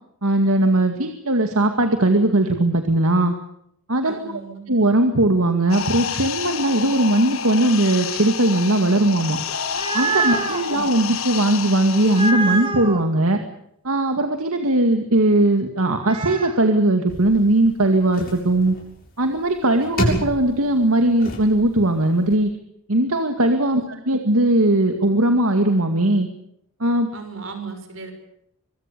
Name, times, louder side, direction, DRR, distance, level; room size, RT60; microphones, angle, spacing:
voice 1, 0.2-3.4 3.9-4.3 4.7-9.4 9.9-13.4 13.8-18.8 19.2-22.5 22.9-26.3 26.8-27.1, right 1 dB, 80° right, 6 dB, 2.2 m, -19 dB
voice 2, 4.0-4.6 10.3-10.5 23.7-23.9 27.1-28.1, right 4 dB, 60° right, 7 dB, 6.2 m, -36 dB
sound 1, 5.7-12.3, left 7 dB, 70° left, 1.4 m, -29 dB
sound 2, 9.5-10.6 12.1-13.0 15.8-16.6, right 3 dB, 25° right, 2.0 m, -25 dB
sound 3, 17.1-22.3, equal, 45° left, 7.3 m, -30 dB
25.5 x 22.5 x 6.9 m, 0.72 s
head